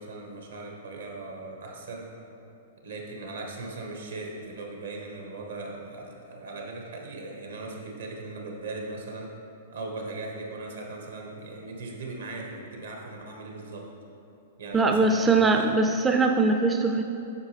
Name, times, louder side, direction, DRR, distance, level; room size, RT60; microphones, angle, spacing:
voice 1, 0.0-2.1 2.8-9.3 9.7-13.9 14.6-15.7, right 3 dB, 80° right, 0 dB, 1.2 m, -38 dB
voice 2, 14.7-17.0, right 3 dB, 15° right, 4 dB, 0.4 m, -21 dB
8.2 x 5.4 x 3.4 m, 2.9 s
hypercardioid pair, 115°, 0 cm